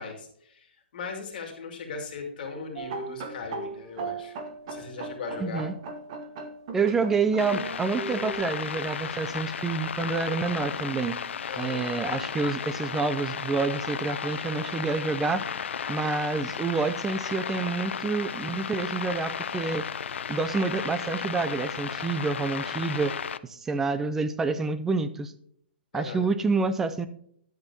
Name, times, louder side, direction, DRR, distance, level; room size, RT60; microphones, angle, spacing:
voice 1, 0.0-4.4 4.6-5.6 11.5-11.8 25.9-26.3, left 4 dB, 50° left, 1 dB, 2.4 m, -38 dB
sound 1, 2.8-8.3, right 3 dB, 30° right, 0.9 m, -38 dB
voice 2, 5.4-5.7 6.7-11.2 11.6-15.5 15.9-19.8 20.3-23.1 23.5-25.3 25.9-27.1, right 4 dB, 5° right, 12 dB, 0.3 m, -28 dB
sound 2, 7.4-23.4, left 7 dB, 90° left, 0.5 m, -34 dB
11.5 x 7.9 x 2.8 m, 0.65 s
hypercardioid pair, 170°, 6 cm